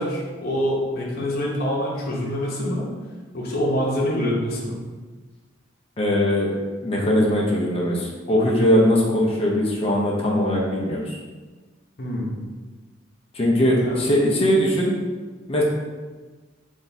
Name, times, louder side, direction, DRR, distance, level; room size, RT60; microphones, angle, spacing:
voice 1, 0.0-2.9 3.3-4.8 12.0-12.3 13.8-13.9, equal, 55° left, -4 dB, 0.9 m, -25 dB
voice 2, 6.0-6.5 6.8-11.2 13.3-14.9 15.5-15.6, equal, 30° left, -3 dB, 0.6 m, -20 dB
3.4 x 2.6 x 4.0 m, 1.3 s
head